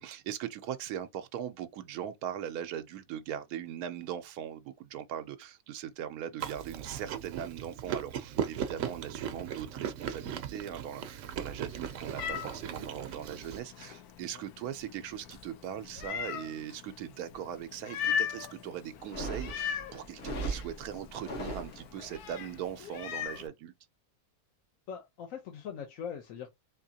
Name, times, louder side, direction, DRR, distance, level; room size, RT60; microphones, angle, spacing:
voice 1, 0.0-23.7, right 10 dB, 90° right, 1.1 m, -40 dB
Chewing mastication, 6.4-13.6, right 9 dB, 65° right, 0.9 m, -38 dB
Meow, 11.4-23.5, left 8 dB, 90° left, 1.1 m, -40 dB
sound 1, 19.0-22.2, right 2 dB, 55° left, 1.5 m, -38 dB
voice 2, 24.9-26.5, left 7 dB, 70° left, 1.1 m, -41 dB
4.1 x 2.8 x 2.7 m
omnidirectional pair, 1.5 m